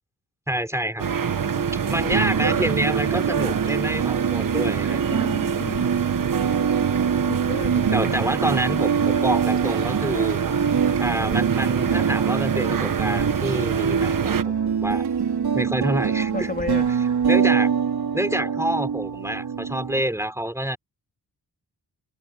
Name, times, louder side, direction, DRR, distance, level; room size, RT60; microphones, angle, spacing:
voice 1, 0.5-1.1 1.9-5.2 7.9-10.4 11.0-15.0 15.5-16.5 17.3-17.7 18.1-20.8, right 1 dB, 5° right, 4.7 m, -27 dB
sound 1, 1.0-14.4, right 7 dB, 55° right, 1.2 m, -26 dB
voice 2, 1.6-1.9 5.1-6.0 7.3-8.2 16.3-16.9, left 2 dB, 25° left, 3.1 m, -33 dB
sound 2, 1.9-20.0, right 7 dB, 70° right, 3.4 m, -25 dB
wide cardioid pair, 150°, 40 cm